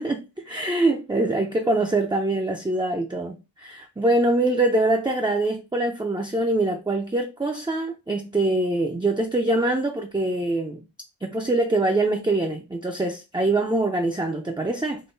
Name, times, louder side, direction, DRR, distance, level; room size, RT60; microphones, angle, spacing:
voice 1, 0.0-10.8 11.2-15.0, right 2 dB, 10° right, 0.5 m, -24 dB
3.8 x 2.3 x 3.9 m
wide cardioid pair, 60°, 48 cm